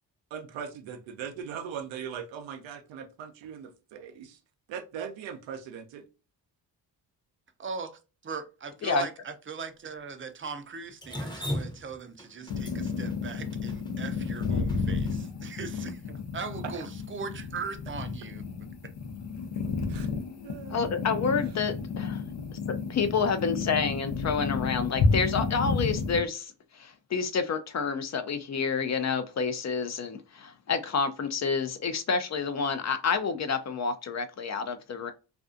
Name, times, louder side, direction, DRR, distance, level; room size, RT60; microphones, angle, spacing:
voice 1, 0.3-4.4 4.7-6.0 16.7-16.8 19.9-20.1 20.4-20.9, right 7 dB, 90° right, 0.6 m, -40 dB
voice 2, 7.6-18.5 18.8-18.9, right 5 dB, 30° right, 0.5 m, -40 dB
Drip, 11.0-15.1, left 1 dB, 10° left, 0.7 m, -37 dB
sound 1, 12.5-26.2, left 4 dB, 75° left, 0.7 m, -31 dB
voice 3, 20.7-22.1 22.7-35.1, left 5 dB, 40° left, 0.4 m, -29 dB
2.5 x 2.3 x 2.5 m
supercardioid pair, 55°, 44 cm